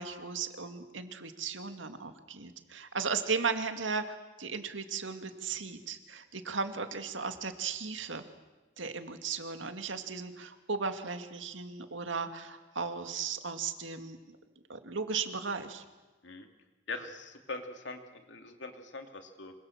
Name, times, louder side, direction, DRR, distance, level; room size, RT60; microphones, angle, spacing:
voice 1, 0.0-8.2 8.8-14.2 14.7-15.8, right 5 dB, 85° right, 7 dB, 2.2 m, -36 dB
voice 2, 16.9-18.0 18.3-19.5, left 3 dB, 70° left, 5 dB, 2.7 m, -42 dB
26.5 x 25.5 x 7.4 m, 1.2 s
head